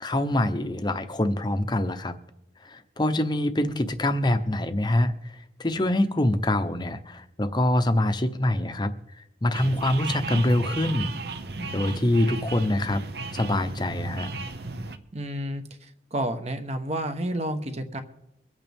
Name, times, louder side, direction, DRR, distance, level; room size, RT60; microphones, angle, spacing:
voice 1, 0.0-2.2 2.6-11.1 11.7-13.0 13.3-14.3, left 1 dB, 25° left, 9 dB, 0.7 m, -25 dB
sound 1, 9.5-15.0, right 3 dB, 60° right, 0.8 m, -35 dB
voice 2, 15.1-18.0, right 1 dB, 35° right, 8 dB, 1.1 m, -30 dB
24.0 x 8.7 x 3.5 m, 0.84 s
head